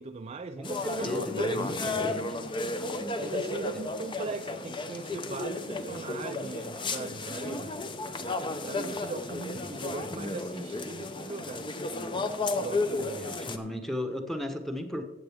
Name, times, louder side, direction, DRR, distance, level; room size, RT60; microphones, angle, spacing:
voice 1, 0.0-2.1 3.1-7.8 8.6-11.7 12.6-13.4, right 3 dB, 35° right, 7 dB, 0.4 m, -39 dB
sound 1, 0.6-13.6, left 2 dB, 25° left, 0.7 m, -33 dB
voice 2, 0.6-2.3 13.2-15.0, left 1 dB, ahead, 5 dB, 1.0 m, -35 dB
15.0 x 7.9 x 3.5 m, 1.0 s
head